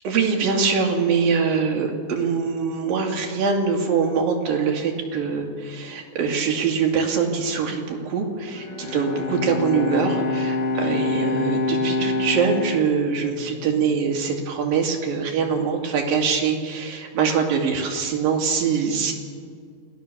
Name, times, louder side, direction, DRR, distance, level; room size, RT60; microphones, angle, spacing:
voice 1, 0.0-19.1, right 5 dB, 90° right, 1 dB, 4.3 m, -23 dB
Bowed string instrument, 8.5-13.9, left 2 dB, 75° left, 3.7 m, -26 dB
28.0 x 17.5 x 6.9 m, 2.2 s
omnidirectional pair, 3.9 m